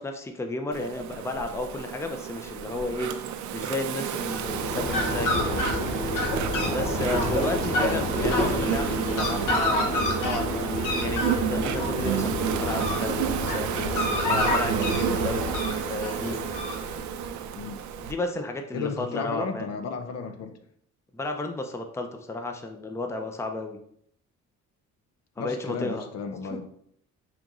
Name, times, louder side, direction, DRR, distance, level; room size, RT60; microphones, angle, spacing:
voice 1, 0.0-3.1 3.5-5.9 6.7-10.7 11.0-13.8 14.3-15.5 15.9-16.4 18.0-19.6 21.1-23.8 25.4-26.1 26.5-26.7, left 2 dB, 10° left, 5 dB, 0.5 m, -33 dB
Insect, 0.7-18.1, right 9 dB, 75° right, 0.4 m, -31 dB
Fowl, 4.2-17.2, left 2 dB, 80° left, 0.9 m, -28 dB
voice 2, 7.8-8.1 17.5-17.8 18.7-20.6 25.4-26.7, left 5 dB, 60° left, 7 dB, 0.6 m, -33 dB
5.0 x 3.0 x 2.4 m, 0.68 s
cardioid pair, 90°, 30 cm